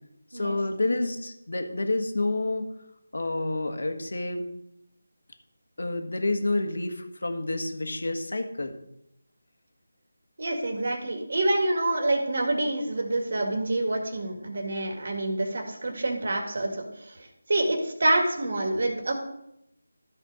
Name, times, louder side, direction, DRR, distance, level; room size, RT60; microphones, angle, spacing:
voice 1, 0.3-2.6 3.1-4.5 5.8-8.7, left 2 dB, 70° left, 6 dB, 1.6 m, -29 dB
voice 2, 10.4-19.1, right 2 dB, 55° right, 3 dB, 2.1 m, -27 dB
13.5 x 5.1 x 5.0 m, 0.80 s
figure-of-eight pair, 165°, 0 cm